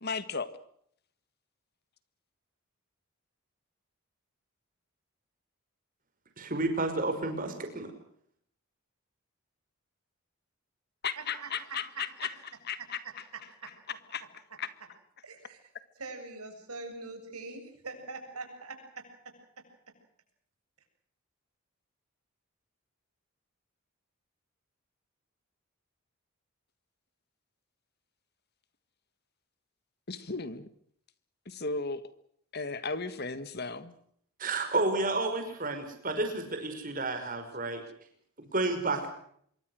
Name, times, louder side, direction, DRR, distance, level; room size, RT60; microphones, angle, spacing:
voice 1, 0.0-0.6 11.0-14.7 30.1-30.7 31.5-32.1 32.5-33.9, left 5 dB, 45° left, 13 dB, 1.6 m, -36 dB
voice 2, 6.4-7.9 34.4-37.8 38.4-39.1, right 2 dB, 40° right, 6 dB, 5.6 m, -31 dB
voice 3, 11.2-11.7 11.9-12.3 13.6-13.7 15.2-15.7 16.0-18.8, right 3 dB, 90° right, 5 dB, 7.5 m, -43 dB
26.0 x 23.5 x 6.5 m, 0.66 s
head